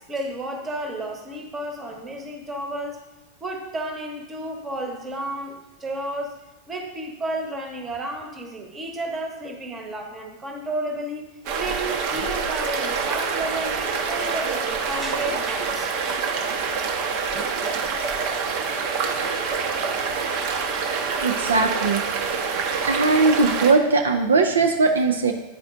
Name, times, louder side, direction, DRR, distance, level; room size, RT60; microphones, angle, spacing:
voice 1, 0.1-3.0 3.4-6.3 6.7-11.3 11.6-16.2, right 1 dB, 20° right, 3 dB, 1.0 m, -32 dB
sound 1, 11.4-23.7, right 5 dB, 45° right, 0.7 m, -26 dB
voice 2, 21.2-22.1 22.8-25.3, right 3 dB, 70° right, 4 dB, 0.4 m, -19 dB
9.7 x 4.2 x 2.5 m, 1.0 s
figure-of-eight pair, 90°, 0 cm